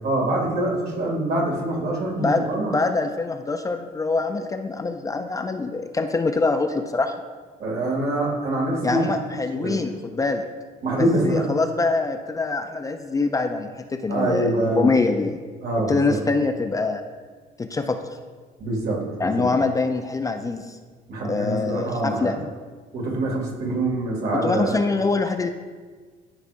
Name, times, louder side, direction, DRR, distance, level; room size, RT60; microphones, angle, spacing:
voice 1, 0.0-2.7 7.6-9.1 9.5-9.8 10.8-11.5 14.1-14.9 15.6-16.2 18.6-19.5 21.1-22.4 22.9-24.7, right 1 dB, 70° right, -3 dB, 2.4 m, -25 dB
voice 2, 2.7-7.1 8.8-10.5 10.9-15.4 15.9-17.0 17.6-18.0 19.2-20.8 21.3-22.3 24.4-25.5, left 3 dB, 20° left, 6 dB, 0.4 m, -24 dB
13.0 x 4.9 x 2.5 m, 1.5 s
cardioid pair, 110°, 17 cm